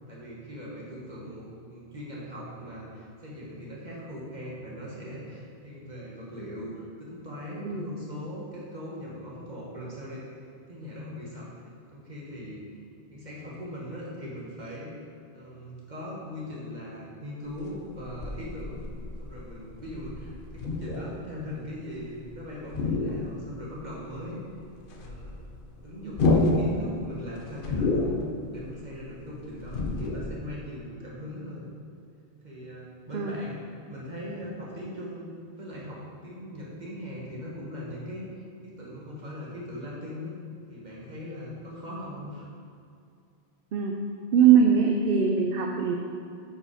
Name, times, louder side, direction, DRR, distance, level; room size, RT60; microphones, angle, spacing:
voice 1, 0.1-10.2 10.7-11.6 11.9-12.7 13.1-14.9 15.3-18.9 19.2-24.4 25.0-25.4 25.8-28.2 28.5-31.7 32.4-35.3 35.6-40.3 40.7-42.5, left 1 dB, 45° right, -5 dB, 1.9 m, -40 dB
sound 1, 17.5-22.3 22.6-23.9 24.2-24.3 24.6-30.3, left 2 dB, 55° left, 0.9 m, -29 dB
voice 2, 44.3-46.0, right 7 dB, 60° right, 1 dB, 0.8 m, -21 dB
8.7 x 5.3 x 5.0 m, 2.3 s
omnidirectional pair, 1.1 m